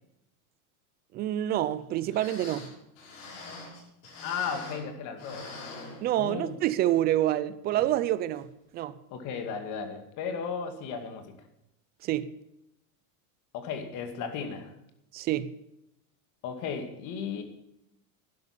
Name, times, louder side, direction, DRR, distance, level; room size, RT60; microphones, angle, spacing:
voice 1, 1.1-2.7 6.0-8.5 8.7-8.9 12.0-12.3 15.1-15.5, right 13 dB, 20° right, 0.5 m, -27 dB
sound 1, 1.8-1.9 2.1-4.9 5.2-6.5 6.9-7.0 7.7-7.9 8.4-8.5, left 3 dB, 60° left, 6.6 m, -44 dB
voice 2, 4.2-5.5 6.2-6.6 9.1-11.4 13.5-14.7 16.4-17.4, left 6 dB, 40° left, 2.3 m, -35 dB
12.0 x 10.5 x 8.6 m
supercardioid pair, 160°, 45 cm